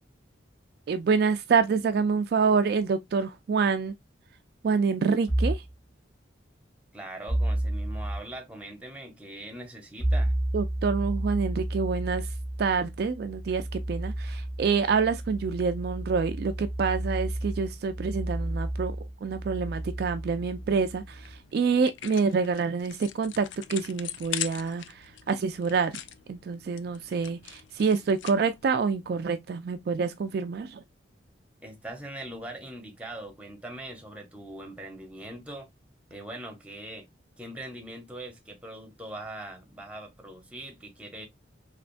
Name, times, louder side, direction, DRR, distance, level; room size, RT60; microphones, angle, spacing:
voice 1, 0.9-3.9 4.6-5.6 10.5-12.3 12.6-19.0 19.2-26.0 26.3-30.8, right 5 dB, 55° right, 0.3 m, -27 dB
sound 1, 5.3-5.7 7.3-8.2 10.0-21.4, right 1 dB, 25° left, 1.6 m, -31 dB
voice 2, 6.9-10.3 31.6-35.7 36.1-37.1 37.4-41.3, right 1 dB, 5° right, 0.8 m, -41 dB
sound 2, 20.5-28.7, left 11 dB, 75° left, 0.4 m, -42 dB
3.4 x 2.9 x 2.5 m
head